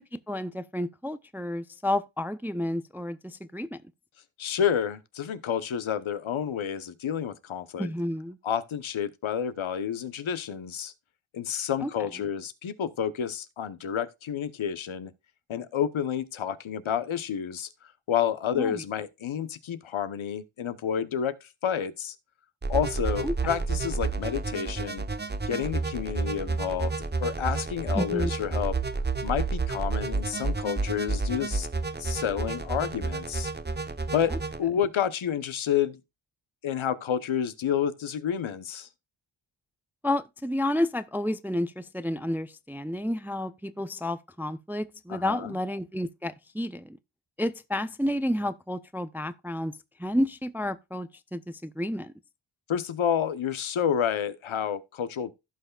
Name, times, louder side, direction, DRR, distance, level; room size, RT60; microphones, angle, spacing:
voice 1, 0.0-3.8 7.8-8.4 11.8-11.9 18.6-18.8 23.2-23.3 28.0-28.3 40.0-47.0 47.4-49.7 50.0-52.1, left 1 dB, 5° right, 0.4 m, -30 dB
voice 2, 4.4-7.9 8.4-10.9 11.3-15.1 15.5-17.7 18.1-22.1 22.7-25.0 25.5-26.9 27.2-28.8 29.2-31.7 32.0-33.5 34.1-34.3 34.6-36.0 36.6-38.9 45.1-45.5 52.7-55.3, left 8 dB, 70° left, 1.0 m, -29 dB
sound 1, 22.6-34.6, right 3 dB, 20° right, 0.8 m, -30 dB
15.5 x 5.6 x 2.3 m
wide cardioid pair, 105°, 49 cm